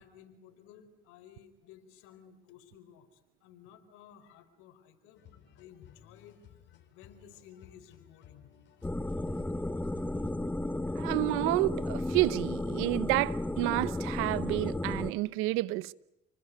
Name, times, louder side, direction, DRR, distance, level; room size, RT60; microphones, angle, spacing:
voice 1, 0.0-6.4 6.9-8.5, left 9 dB, 90° left, 4.5 m, -56 dB
sound 1, 5.2-10.3, left 10 dB, 65° left, 4.6 m, -58 dB
sound 2, 8.8-15.1, left 1 dB, 10° left, 1.0 m, -33 dB
voice 2, 11.0-15.9, right 19 dB, 90° right, 0.9 m, -30 dB
29.5 x 20.5 x 9.4 m
supercardioid pair, 85°, 20 cm